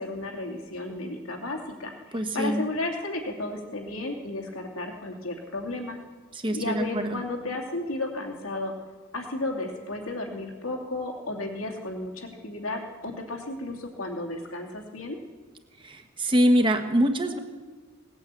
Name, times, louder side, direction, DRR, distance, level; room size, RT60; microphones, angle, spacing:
voice 1, 0.0-6.0 6.5-8.7 9.1-15.2, left 2 dB, 80° left, 2 dB, 2.7 m, -33 dB
voice 2, 2.1-2.6 6.3-7.2 15.8-17.4, equal, 25° right, 5 dB, 1.4 m, -24 dB
18.5 x 8.9 x 8.4 m, 1.3 s
head